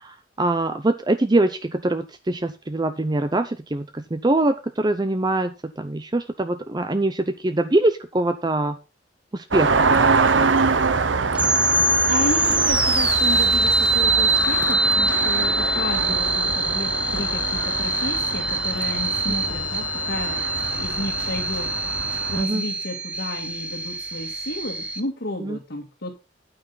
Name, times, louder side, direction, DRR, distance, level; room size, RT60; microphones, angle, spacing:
voice 1, 0.0-8.8 9.3-10.2 22.4-22.6 25.4-25.6, right 2 dB, 25° right, 9 dB, 0.6 m, -23 dB
sound 1, 9.5-22.4, right 4 dB, 90° right, 0.9 m, -25 dB
sound 2, 11.3-25.0, right 2 dB, 5° right, 1.1 m, -23 dB
voice 2, 11.6-20.5 20.8-26.1, left 1 dB, 70° left, -1 dB, 2.2 m, -32 dB
9.6 x 8.8 x 4.0 m, 0.29 s
head